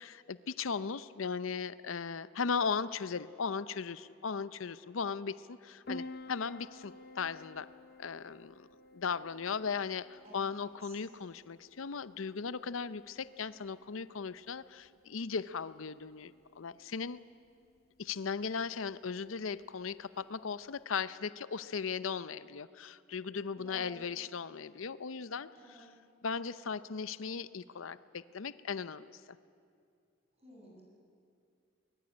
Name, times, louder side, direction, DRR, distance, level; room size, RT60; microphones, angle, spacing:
voice 1, 0.0-7.7 8.0-8.7 8.9-17.2 18.0-25.5 26.2-29.4, left 5 dB, 90° left, 16 dB, 0.6 m, -37 dB
Piano, 5.9-20.8, left 2 dB, 50° left, 0.8 m, -53 dB
voice 2, 10.2-11.0 23.6-24.1 25.5-26.0 30.4-30.8, right 1 dB, 30° right, -2 dB, 6.7 m, -53 dB
23.5 x 21.0 x 9.9 m, 2.4 s
head